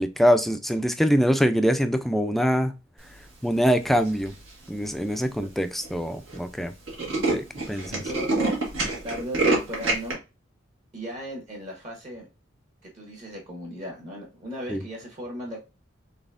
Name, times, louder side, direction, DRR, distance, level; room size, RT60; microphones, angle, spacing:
voice 1, 0.0-2.7 3.4-4.3 4.7-6.7 7.3-8.0 14.7-14.8, equal, ahead, 0.3 m, -23 dB
Tools, 4.1-4.5 5.1-5.2 5.4-5.5 5.8-6.0 6.3-6.4 6.6-10.1, right 2 dB, 80° right, 1.6 m, -26 dB
voice 2, 7.9-8.6 9.0-10.2 10.9-12.3 12.8-15.6, equal, 40° right, 1.3 m, -36 dB
4.0 x 3.4 x 2.5 m
head